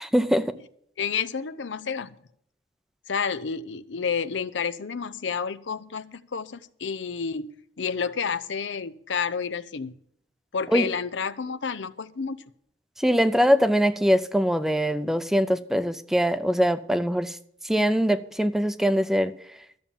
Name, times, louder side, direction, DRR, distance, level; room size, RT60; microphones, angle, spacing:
voice 1, 0.1-0.6 10.7-10.9 13.0-17.4 17.6-19.3, equal, ahead, 0.5 m, -22 dB
voice 2, 1.0-2.2 3.1-7.5 7.8-10.0 10.5-12.4, left 6 dB, 90° left, 0.6 m, -30 dB
13.0 x 7.0 x 7.2 m
head